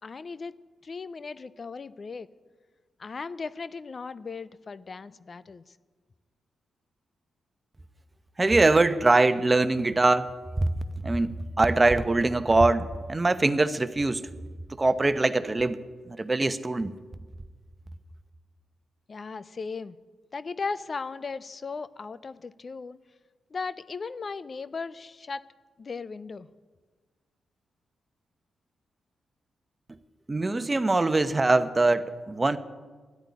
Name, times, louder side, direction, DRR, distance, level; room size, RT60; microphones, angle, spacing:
voice 1, 0.0-2.3 3.0-5.8 19.1-20.0 20.3-23.0 23.5-25.4 25.8-26.5, left 4 dB, 50° left, 16 dB, 0.5 m, -37 dB
voice 2, 8.4-10.3 11.0-14.2 14.7-15.8 16.0-16.9 30.3-32.6, right 2 dB, 30° right, 12 dB, 0.9 m, -23 dB
12.5 x 8.9 x 9.7 m, 1.4 s
supercardioid pair, 45°, 0 cm